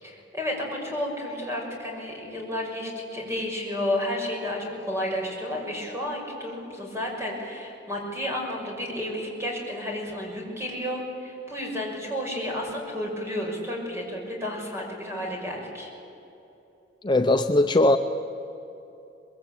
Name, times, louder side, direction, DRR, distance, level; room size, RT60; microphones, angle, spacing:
voice 1, 0.0-15.9, left 1 dB, 15° right, -1 dB, 5.7 m, -31 dB
voice 2, 17.0-18.0, left 2 dB, 25° left, 6 dB, 0.6 m, -19 dB
23.5 x 21.5 x 9.0 m, 3.0 s
head